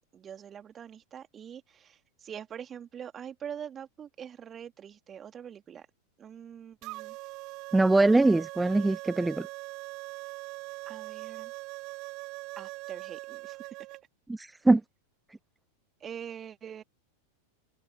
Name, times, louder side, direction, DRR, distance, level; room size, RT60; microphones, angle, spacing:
voice 1, 0.1-5.9 6.2-7.2 10.9-11.5 12.6-13.7 16.0-16.8, right 8 dB, 25° right, 2.8 m, -44 dB
sound 1, 6.8-14.0, right 23 dB, 40° right, 1.9 m, -41 dB
voice 2, 7.7-9.5 14.3-14.8, right 2 dB, 5° right, 0.7 m, -22 dB
figure-of-eight pair, 90°, 0 cm